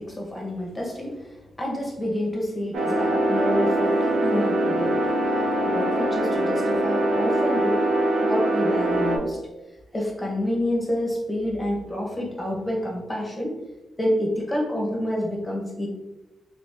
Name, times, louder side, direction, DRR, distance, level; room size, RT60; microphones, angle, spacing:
voice 1, 0.0-5.2 5.6-7.9 8.2-9.4 9.9-13.6 14.0-15.9, left 1 dB, 15° left, -2 dB, 0.9 m, -28 dB
sound 1, 2.7-9.2, right 1 dB, 85° right, 0.7 m, -23 dB
2.9 x 2.8 x 3.5 m, 1.1 s
cardioid pair, 65°, 0 cm